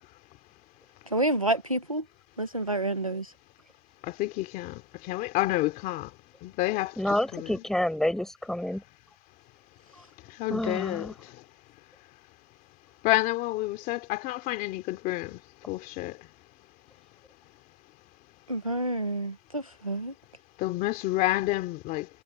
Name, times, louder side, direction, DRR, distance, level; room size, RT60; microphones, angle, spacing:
voice 1, 1.1-2.0 2.4-3.3 18.5-20.1, right 1 dB, 25° right, 0.4 m, -28 dB
voice 2, 4.0-6.1 6.4-7.6 10.4-11.4 13.0-15.4 15.7-16.2 20.6-22.1, left 18 dB, 20° left, 2.6 m, -29 dB
voice 3, 7.0-8.8 10.5-11.1, left 1 dB, ahead, 4.1 m, -28 dB
hypercardioid pair, 165°, 46 cm